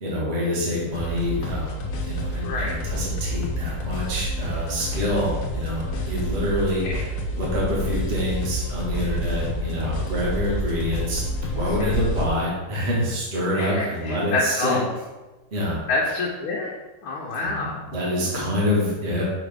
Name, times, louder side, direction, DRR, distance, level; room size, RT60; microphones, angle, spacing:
voice 1, 0.0-14.8 15.5-15.8 17.4-19.2, equal, 35° right, -5 dB, 1.6 m, -26 dB
sound 1, 0.9-12.3, equal, 60° left, 1.1 m, -28 dB
voice 2, 2.4-2.7 5.0-5.2 6.8-6.9 11.8-11.9 13.5-14.9 15.9-16.7 17.0-17.8, left 3 dB, 80° left, -4 dB, 1.7 m, -27 dB
6.5 x 5.0 x 3.4 m, 1.2 s
omnidirectional pair, 2.4 m